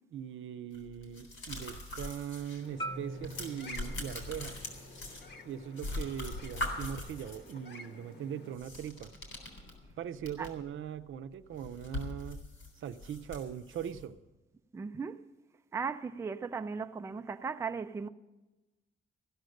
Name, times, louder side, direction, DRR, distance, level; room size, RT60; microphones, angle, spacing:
voice 1, 0.1-4.6 5.4-9.1 10.0-12.4 12.8-14.2, right 9 dB, 75° right, 0.6 m, -40 dB
sound 1, 0.7-2.7 2.9-5.5 5.8-7.5 8.5-10.7 11.0-11.1 11.5-14.0, left 1 dB, 85° left, 3.7 m, -41 dB
sound 2, 2.6-8.6, left 2 dB, 55° left, 1.3 m, -52 dB
Marimba xylophone, 2.8-7.0, right 1 dB, 25° left, 0.8 m, -46 dB
voice 2, 14.7-15.3 15.7-18.1, right 5 dB, 15° right, 0.3 m, -37 dB
15.0 x 6.4 x 9.1 m
wide cardioid pair, 140°, 21 cm